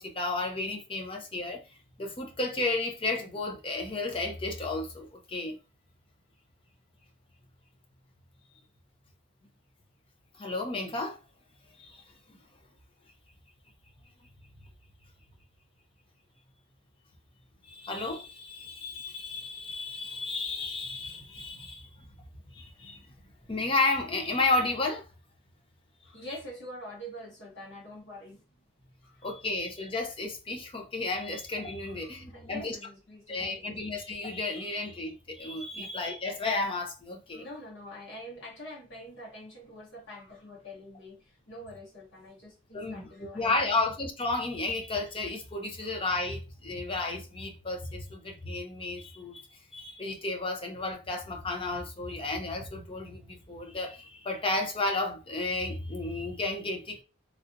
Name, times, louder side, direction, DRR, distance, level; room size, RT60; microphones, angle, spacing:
voice 1, 0.0-1.6 2.0-5.6 10.4-11.2 11.8-12.0 17.7-21.9 22.5-23.0 23.5-25.1 29.2-32.8 33.3-37.5 42.7-49.5 49.7-57.0, left 2 dB, 25° left, 0.6 m, -32 dB
voice 2, 26.0-28.4 29.0-29.3 31.8-33.8 34.5-34.8 35.7-35.9 37.3-43.8 45.8-45.9, left 1 dB, 55° left, 1.6 m, -45 dB
3.3 x 2.6 x 2.5 m
head